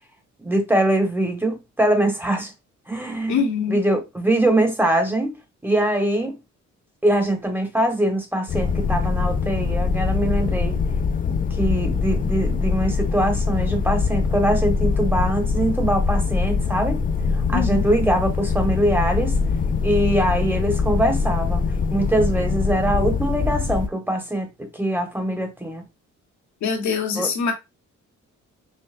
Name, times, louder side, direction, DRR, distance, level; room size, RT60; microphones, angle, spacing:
voice 1, 0.4-2.5 2.9-3.4 3.7-5.3 5.6-6.4 7.0-10.8 11.3-17.0 17.5-19.3 19.8-21.6 21.9-25.8 27.2-27.3, right 1 dB, 5° right, 1.2 m, -22 dB
voice 2, 3.3-3.8 17.5-17.9 26.6-27.5, left 5 dB, 70° left, 1.2 m, -23 dB
sound 1, 8.5-23.9, left 5 dB, 30° left, 0.4 m, -23 dB
5.5 x 2.2 x 2.5 m
cardioid pair, 90°, 30 cm